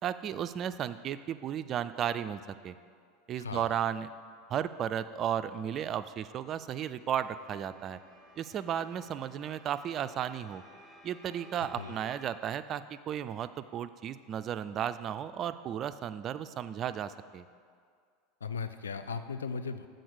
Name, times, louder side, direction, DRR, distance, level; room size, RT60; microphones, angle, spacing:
voice 1, 0.0-2.8 3.3-4.1 4.5-8.0 8.4-10.6 11.0-17.5, right 9 dB, 40° right, 13 dB, 0.3 m, -34 dB
voice 2, 3.4-3.7 11.8-11.9 18.4-19.9, left 5 dB, 85° left, 10 dB, 0.4 m, -37 dB
sound 1, 7.0-12.2, left 1 dB, 20° left, 2.0 m, -56 dB
7.7 x 3.9 x 6.7 m, 2.1 s
hypercardioid pair, 85°, 0 cm